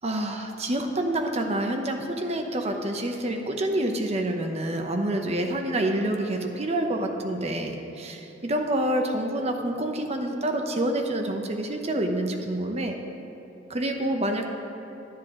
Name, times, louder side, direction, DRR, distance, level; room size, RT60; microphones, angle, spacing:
voice 1, 0.0-12.9 13.7-14.4, right 1 dB, 35° right, 3 dB, 0.8 m, -27 dB
10.5 x 10.5 x 3.7 m, 2.9 s
head